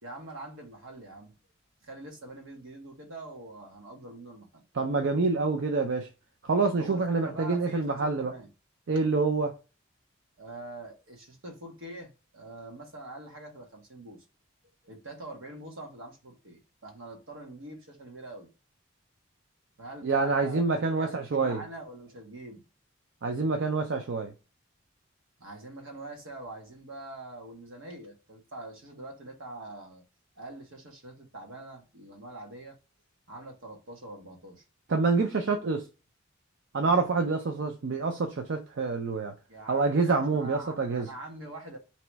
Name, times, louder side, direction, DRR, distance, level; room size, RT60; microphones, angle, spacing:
voice 1, 0.0-1.3 1.8-4.6 6.8-8.5 10.4-14.2 14.8-18.5 19.8-20.6 20.9-22.6 25.4-30.0 30.4-32.8 33.3-34.6 39.5-41.8, right 1 dB, 80° right, 1.2 m, -44 dB
voice 2, 4.7-6.1 6.4-8.3 8.9-9.5 20.0-21.6 23.2-24.3 34.9-35.8 36.7-39.3 39.7-41.1, right 4 dB, 65° right, 0.5 m, -27 dB
3.0 x 2.9 x 4.5 m
head